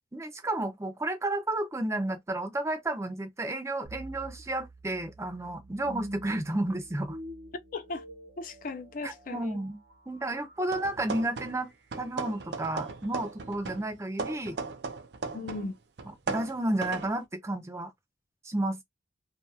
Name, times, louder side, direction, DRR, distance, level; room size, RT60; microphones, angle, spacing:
voice 1, 0.1-7.2 9.0-9.8 10.1-11.7 12.0-14.6 16.1-17.9 18.4-18.8, right 1 dB, 15° right, 0.5 m, -32 dB
sound 1, 3.8-13.0, right 1 dB, 85° right, 0.8 m, -48 dB
voice 2, 7.7-8.0 8.4-9.6 15.3-15.7, left 3 dB, 50° left, 0.5 m, -37 dB
sound 2, 10.7-11.7 11.9-15.7 16.0-17.1, right 4 dB, 65° right, 0.5 m, -37 dB
2.6 x 2.3 x 2.7 m
head